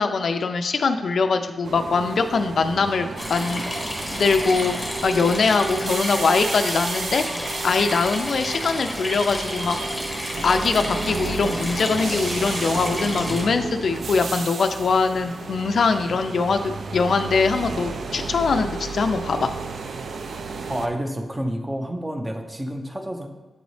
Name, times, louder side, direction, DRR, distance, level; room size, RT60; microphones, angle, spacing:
voice 1, 0.0-7.2 7.6-9.8 10.4-19.5, left 4 dB, 70° left, 6 dB, 0.3 m, -22 dB
sound 1, 1.6-20.9, right 4 dB, 70° right, 0.4 m, -32 dB
sound 2, 3.2-13.4, left 1 dB, 5° left, 1.1 m, -31 dB
voice 2, 20.7-23.3, equal, 15° right, 4 dB, 0.6 m, -29 dB
8.0 x 4.0 x 3.1 m, 1.2 s
wide cardioid pair, 140°, 0 cm